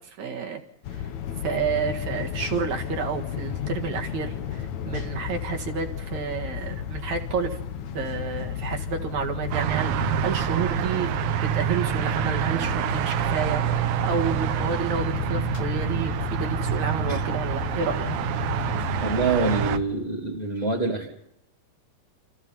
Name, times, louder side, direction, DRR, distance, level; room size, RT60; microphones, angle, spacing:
voice 1, 0.2-0.6 0.9-1.1 1.4-7.6 7.9-18.1, right 6 dB, 55° right, 3 dB, 2.7 m, -30 dB
sound 1, 0.8-19.8, left 9 dB, 60° left, 2.0 m, -33 dB
sound 2, 9.5-19.8, right 12 dB, 70° right, 2.5 m, -27 dB
voice 2, 19.0-21.1, right 3 dB, 15° left, 1 dB, 2.1 m, -26 dB
29.5 x 26.5 x 4.3 m, 0.76 s
omnidirectional pair, 4.6 m